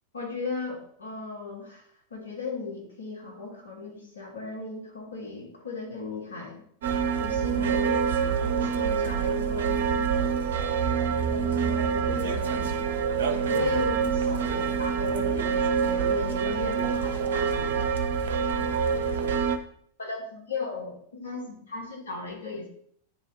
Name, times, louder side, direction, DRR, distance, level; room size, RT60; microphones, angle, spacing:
voice 1, 0.1-1.8 2.1-6.6 7.2-10.1 11.3-12.9 13.5-17.8 20.0-22.7, left 4 dB, 70° left, -1 dB, 2.1 m, -37 dB
sound 1, 6.8-19.6, right 6 dB, 60° right, 0.7 m, -26 dB
9.6 x 4.2 x 3.8 m, 0.64 s
figure-of-eight pair, 90°, 0 cm